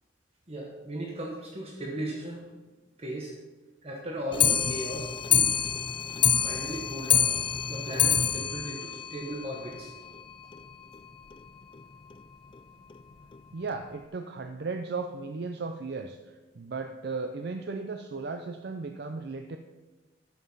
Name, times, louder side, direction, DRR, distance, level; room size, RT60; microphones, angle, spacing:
voice 1, 0.5-2.5 3.0-3.4 3.8-5.6 6.4-7.3 7.7-9.9, right 1 dB, 30° right, 0 dB, 1.1 m, -37 dB
Clock, 4.3-9.8 10.2-10.3 10.5-10.6 10.9-11.0 11.3-11.4 12.1-12.2 12.9-13.0 13.7-13.8, left 8 dB, 25° left, 0.3 m, -26 dB
voice 2, 13.5-19.6, right 4 dB, 55° right, 6 dB, 0.5 m, -36 dB
10.5 x 7.2 x 5.5 m, 1.2 s
head